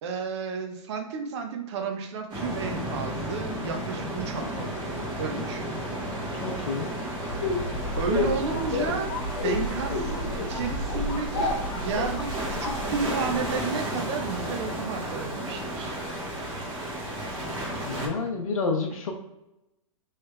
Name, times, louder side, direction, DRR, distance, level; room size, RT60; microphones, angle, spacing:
voice 1, 0.0-4.9 5.2-5.7 8.0-9.2 9.4-16.0, right 5 dB, 55° right, 5 dB, 0.8 m, -32 dB
sound 1, 2.3-18.1, right 1 dB, 30° right, 1.3 m, -33 dB
voice 2, 6.4-6.9 17.8-19.1, left 4 dB, 80° left, 1 dB, 0.7 m, -29 dB
sound 2, 7.3-13.5, left 2 dB, 60° left, 1.0 m, -31 dB
3.2 x 3.2 x 3.2 m, 0.92 s
hypercardioid pair, 125°, 17 cm